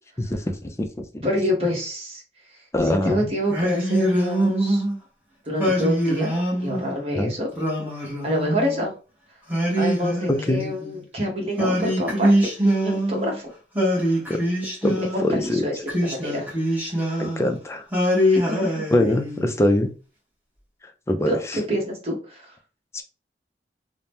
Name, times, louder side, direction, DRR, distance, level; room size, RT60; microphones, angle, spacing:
voice 1, 0.2-0.9 1.1-1.2 2.7-3.3 7.2-7.3 10.3-10.6 14.3-14.4 14.8-15.7 17.2-17.8 18.9-19.9 21.1-21.3 22.9-23.0, left 1 dB, 15° left, 6 dB, 0.4 m, -23 dB
voice 2, 1.2-2.2 2.8-4.8 5.5-7.5 8.0-8.9 9.8-12.3 12.8-13.5 13.9-14.1 15.0-16.5 16.8-17.2 18.4-18.8 21.2-22.5, left 1 dB, 35° right, -1 dB, 1.0 m, -27 dB
Singing, 3.5-5.0 5.6-6.9 7.5-8.9 9.5-11.0 11.6-13.4 13.8-15.4 15.9-17.5 17.9-19.5, equal, 10° right, 0.9 m, -23 dB
2.8 x 2.0 x 3.4 m, 0.34 s
head